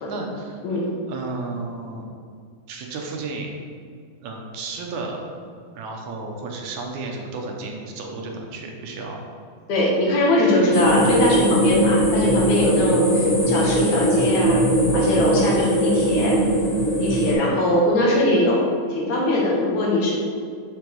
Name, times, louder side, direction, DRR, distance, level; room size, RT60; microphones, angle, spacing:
voice 1, 0.0-0.6 1.1-2.1 2.7-3.5 4.2-5.2 5.7-9.2, right 3 dB, 75° right, 1 dB, 2.0 m, -32 dB
voice 2, 9.7-14.6 14.9-16.4 17.0-18.6 18.9-20.2, left 1 dB, 70° left, -3 dB, 2.4 m, -21 dB
sound 1, 10.7-17.3, equal, 35° left, 0.6 m, -20 dB
6.7 x 3.4 x 5.9 m, 2.2 s
omnidirectional pair, 3.5 m